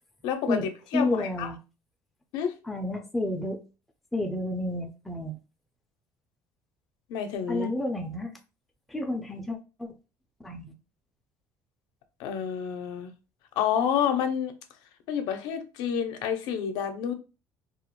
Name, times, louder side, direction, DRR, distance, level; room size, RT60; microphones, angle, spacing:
voice 1, 0.2-0.6 0.9-1.5 2.3-2.5 7.1-7.7 12.2-13.1 13.6-14.5 15.1-17.1, left 8 dB, 75° left, 0.5 m, -29 dB
voice 2, 0.9-1.6 2.6-3.6 4.1-5.4 7.5-8.3 8.9-9.9 10.4-10.7, left 1 dB, ahead, 0.3 m, -30 dB
2.3 x 2.0 x 2.9 m
cardioid pair, 150°, 7 cm